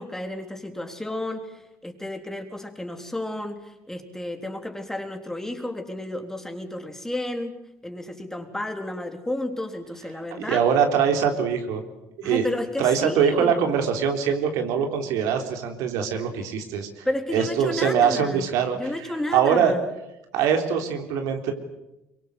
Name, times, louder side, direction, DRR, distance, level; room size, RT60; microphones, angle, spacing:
voice 1, 0.0-7.6 7.8-10.7 12.2-13.6 17.0-18.5 18.7-19.8, left 1 dB, 10° left, 5 dB, 3.7 m, -32 dB
voice 2, 10.5-11.8 12.2-12.5 12.8-17.0 17.3-18.8 19.3-19.7 20.3-21.5, right 7 dB, 80° right, 5 dB, 3.6 m, -23 dB
24.0 x 23.0 x 8.0 m, 0.92 s
supercardioid pair, 95°, 6 cm